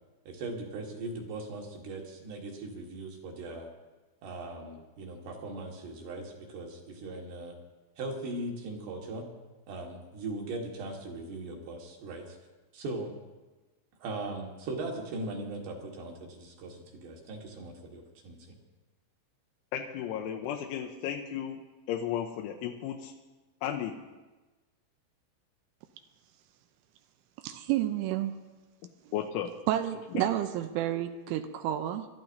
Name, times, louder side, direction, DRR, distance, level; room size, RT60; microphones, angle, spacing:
voice 1, 0.3-3.7 4.2-7.6 8.0-9.3 9.7-12.4 12.7-13.2 14.0-18.4, right 2 dB, 65° right, 0 dB, 3.6 m, -39 dB
voice 2, 19.7-21.6 21.9-23.1 23.6-24.0 29.1-29.5 30.1-30.2, left 9 dB, 85° left, 1 dB, 3.2 m, -34 dB
voice 3, 27.4-28.4 29.7-32.1, right 12 dB, 85° right, 6 dB, 3.1 m, -30 dB
27.5 x 13.0 x 2.7 m, 1.2 s
omnidirectional pair, 5.6 m